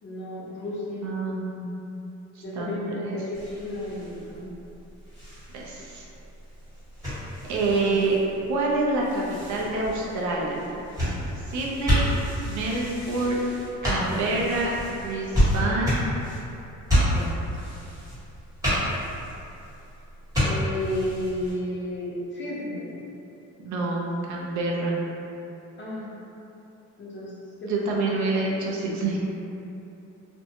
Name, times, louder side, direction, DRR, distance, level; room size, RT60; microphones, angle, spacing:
voice 1, 0.0-1.1 2.4-4.5 7.7-8.0 20.4-22.9 25.8-26.2 27.0-27.3 27.6-27.8, left 1 dB, 40° left, -7 dB, 0.7 m, -32 dB
voice 2, 1.0-1.8 2.4-3.2 5.5-6.0 7.5-8.2 8.5-10.6 11.4-12.1 12.5-13.4 13.8-16.1 17.1-17.3 23.6-25.0 27.6-29.2, right 2 dB, 70° right, -3 dB, 0.6 m, -27 dB
sound 1, 3.3-21.5, equal, 10° right, 1.3 m, -30 dB
2.5 x 2.2 x 2.8 m, 2.8 s
cardioid pair, 120°, 30 cm